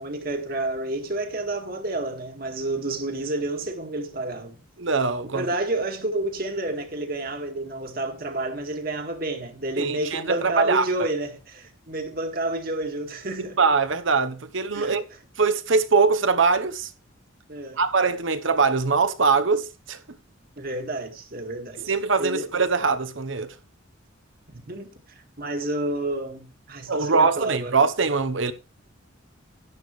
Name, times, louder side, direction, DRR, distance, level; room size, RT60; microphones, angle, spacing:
voice 1, 0.0-4.6 5.3-13.6 14.7-15.0 17.5-17.8 20.6-22.5 24.5-24.9 25.4-27.7, right 2 dB, 45° right, 2.0 m, -30 dB
voice 2, 4.8-5.4 9.8-10.8 13.6-15.0 15.4-16.9 17.8-20.0 21.8-23.5 26.9-28.5, right 4 dB, 65° right, 1.0 m, -22 dB
12.0 x 11.0 x 3.3 m
head